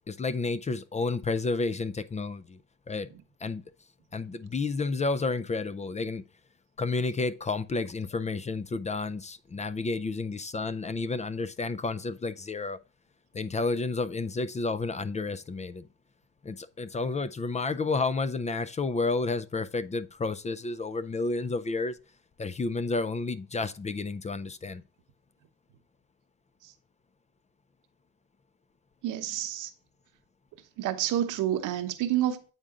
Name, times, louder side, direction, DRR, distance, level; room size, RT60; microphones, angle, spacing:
voice 1, 0.1-2.6 2.9-3.1 3.4-3.6 4.1-6.2 6.8-12.8 13.3-15.8 16.4-22.0 22.4-24.8, left 3 dB, 25° left, 0.4 m, -31 dB
voice 2, 29.0-29.7 30.8-32.4, right 12 dB, 85° right, 0.9 m, -29 dB
8.8 x 3.8 x 3.5 m
cardioid pair, 90°, 30 cm